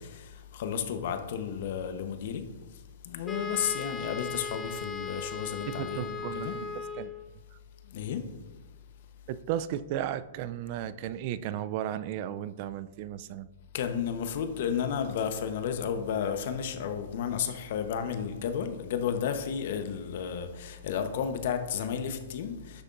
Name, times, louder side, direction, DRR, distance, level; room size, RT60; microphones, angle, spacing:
voice 1, 0.0-6.6 7.8-8.3 13.7-22.8, left 7 dB, 60° left, 0.9 m, -33 dB
Wind instrument woodwind instrument, 3.3-7.3, left 4 dB, 15° left, 0.9 m, -37 dB
voice 2, 5.8-6.7 7.0-7.1 9.3-13.5, right 11 dB, 45° right, 0.4 m, -34 dB
9.8 x 6.6 x 2.5 m
hypercardioid pair, 140°, 0 cm